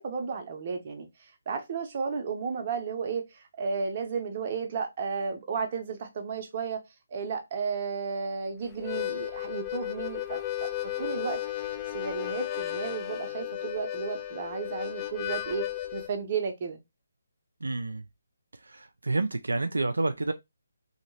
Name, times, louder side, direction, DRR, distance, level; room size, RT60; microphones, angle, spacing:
voice 1, 0.0-6.8 7.1-10.7 11.0-11.4 11.9-16.8, right 5 dB, 40° right, 0.8 m, -33 dB
Harmonica, 8.7-16.1, left 13 dB, 20° left, 0.4 m, -34 dB
voice 2, 17.6-18.0 18.5-20.3, right 3 dB, 80° right, 0.3 m, -29 dB
2.9 x 2.8 x 2.7 m
figure-of-eight pair, 150°, 0 cm